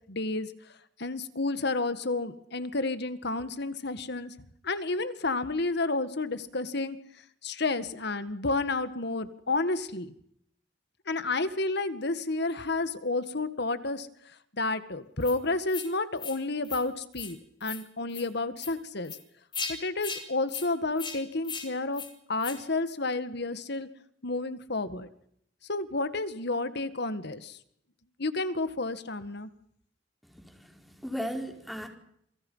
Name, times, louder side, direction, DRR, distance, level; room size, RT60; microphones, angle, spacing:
voice 1, 0.1-0.5 1.0-4.3 4.6-7.0 7.4-10.1 11.1-14.1 14.5-19.2 19.7-22.0 22.3-23.9 24.2-25.1 25.7-27.6 28.2-29.5, left 3 dB, 65° left, 12 dB, 1.9 m, -31 dB
sound 1, 15.2-15.4 15.7-15.9 16.2-16.4 16.6-16.8 17.1-17.3 17.6-17.8 18.1-18.2 18.6-18.7 19.0-19.2 19.5-19.7 20.0-20.2 20.5-20.7 21.0-21.2 21.4-21.7 21.9-22.1 22.4-22.6, left 5 dB, 25° left, 4.0 m, -37 dB
voice 2, 30.2-31.9, equal, ahead, 3 dB, 4.6 m, -37 dB
28.0 x 24.5 x 5.7 m, 0.71 s
head